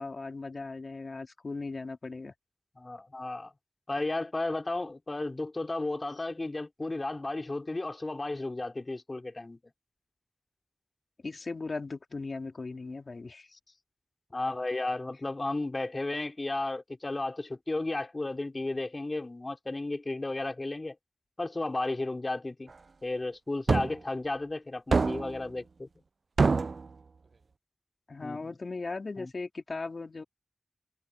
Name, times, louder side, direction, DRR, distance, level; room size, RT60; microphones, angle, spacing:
voice 1, 0.0-2.3 11.2-13.6 28.1-30.2, left 3 dB, 65° left, 3.2 m, -38 dB
voice 2, 2.8-3.5 3.9-9.6 14.3-21.0 21.4-22.7 23.0-25.9 28.2-28.5 29.2-29.3, left 2 dB, 40° left, 4.5 m, -33 dB
sound 1, 23.7-24.0 24.9-25.4 26.4-26.9, right 4 dB, 70° right, 0.3 m, -25 dB
cardioid pair, 40°, 0 cm